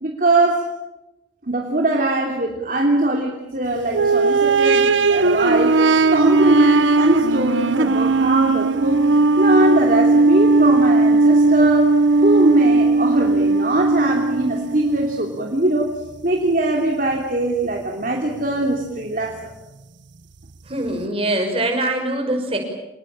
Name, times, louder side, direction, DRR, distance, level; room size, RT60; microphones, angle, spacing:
voice 1, 0.0-0.7 1.5-5.8 6.1-9.1 9.4-15.9 16.2-19.4, right 1 dB, 45° right, 0 dB, 3.0 m, -21 dB
sound 1, 3.9-15.5 16.1-16.2 17.2-17.3, right 3 dB, 80° right, 0.9 m, -17 dB
voice 2, 20.7-22.6, right 1 dB, 30° right, 3 dB, 5.9 m, -23 dB
28.0 x 20.5 x 8.9 m, 1.0 s
head